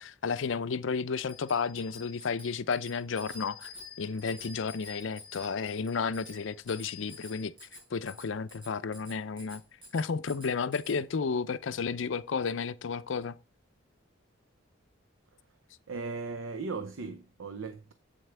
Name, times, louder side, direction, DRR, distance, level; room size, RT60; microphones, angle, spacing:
voice 1, 0.0-3.7 4.0-9.6 9.9-13.3, left 5 dB, 70° left, 0.5 m, -32 dB
Bicycle bell, 1.3-11.0, left 4 dB, 25° right, 4.6 m, -49 dB
voice 2, 15.9-17.9, right 4 dB, 85° right, 0.7 m, -37 dB
8.1 x 7.7 x 3.3 m
head